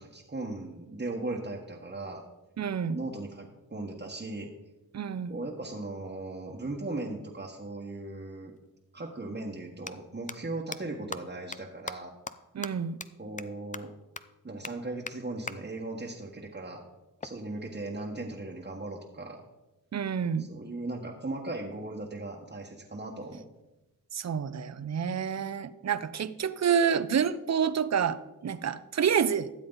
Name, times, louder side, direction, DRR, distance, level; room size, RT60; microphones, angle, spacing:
voice 1, 0.0-2.2 2.9-4.5 5.3-8.5 8.9-12.1 13.2-13.9 14.4-16.8 17.2-19.4 20.4-23.4, right 2 dB, 30° right, -2 dB, 1.4 m, -38 dB
voice 2, 2.6-3.0 4.9-5.4 12.5-13.0 19.9-20.5 24.1-29.5, right 7 dB, 50° right, 15 dB, 0.6 m, -28 dB
sound 1, 8.6-8.7 9.7-9.9 10.3-10.4 10.7-10.8 11.1-11.2 11.5-11.6 11.9-12.0 12.3-12.4 12.6-12.7 13.0-13.1 13.4-13.5 13.7-13.8 14.2-14.3 14.6-14.7 15.1-15.2 15.5-15.6 17.2-18.2, left 4 dB, 20° left, 0.6 m, -39 dB
13.0 x 7.5 x 4.0 m, 1.0 s
cardioid pair, 45°, 35 cm